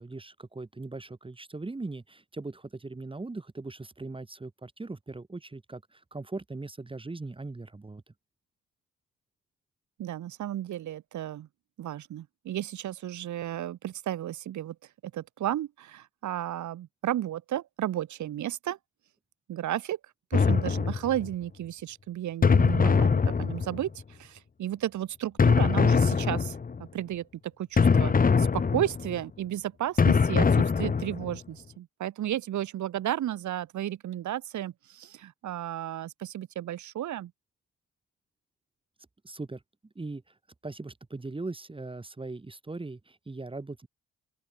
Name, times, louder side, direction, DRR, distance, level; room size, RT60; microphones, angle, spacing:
voice 1, 0.0-8.1 39.2-39.6 40.0-40.2 40.6-43.9, right 3 dB, 15° right, 1.9 m, -39 dB
voice 2, 10.0-11.5 11.8-14.8 15.1-18.8 19.5-20.0 20.3-37.3, right 12 dB, 70° right, 2.4 m, -33 dB
sound 1, 20.3-21.3 22.4-24.0 25.4-26.8 27.8-29.2 30.0-31.4, left 5 dB, 30° left, 1.3 m, -23 dB
open air
cardioid pair, 90°, 30 cm